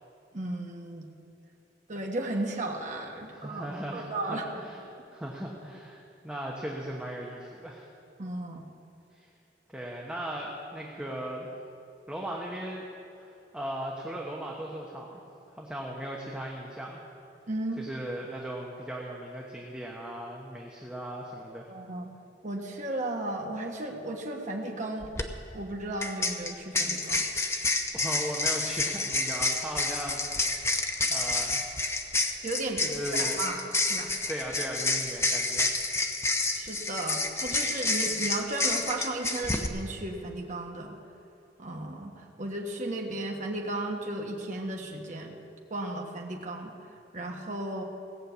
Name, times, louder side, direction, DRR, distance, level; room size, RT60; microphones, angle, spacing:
voice 1, 0.3-1.1 1.9-4.5 8.2-8.6 17.5-17.8 21.7-22.1 22.4-25.1 25.5-27.2 32.4-32.8 33.1-33.6 33.9-34.1 36.6-41.0 41.6-45.4 45.7-46.7 47.1-47.8, right 2 dB, 45° right, 0 dB, 1.3 m, -34 dB
voice 2, 3.3-4.8 5.1-7.9 9.1-9.3 9.7-11.5 12.1-12.9 13.2-15.2 15.5-17.0 17.8-21.7 27.9-30.7 31.1-31.8 32.8-33.4 34.3-35.7, right 1 dB, 5° right, -3 dB, 1.1 m, -37 dB
sound 1, 25.0-25.2 26.0-39.7, left 3 dB, 15° left, 0.7 m, -29 dB
17.0 x 6.7 x 8.1 m, 2.7 s
head